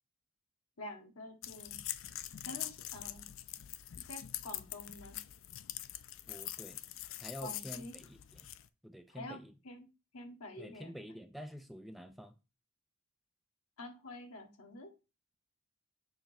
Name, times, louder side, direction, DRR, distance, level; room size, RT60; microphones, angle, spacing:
voice 1, 0.8-1.8 2.4-3.3 4.1-5.2 7.4-7.9 9.1-9.9 10.1-11.0 13.8-14.9, left 1 dB, 85° left, 1.6 m, -48 dB
sound 1, 1.4-8.7, left 13 dB, 60° left, 0.4 m, -44 dB
voice 2, 6.3-6.8 7.2-8.5 8.8-9.5 10.6-12.3, equal, ahead, 0.5 m, -48 dB
6.9 x 3.0 x 5.8 m
head